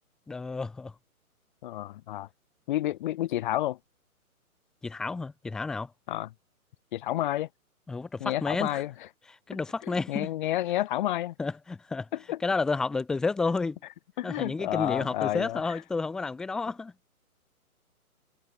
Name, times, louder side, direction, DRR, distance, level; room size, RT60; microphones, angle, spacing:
voice 1, 0.3-0.9 4.8-5.9 7.9-8.8 9.3-10.3 11.4-12.1 12.4-13.8 14.2-16.9, left 4 dB, ahead, 0.7 m, -31 dB
voice 2, 1.6-2.3 2.7-3.8 6.1-6.3 6.9-7.5 8.2-8.9 9.9-11.3 12.3-12.4 14.2-15.8, left 14 dB, 35° left, 2.0 m, -30 dB
hypercardioid pair, 150°, 44 cm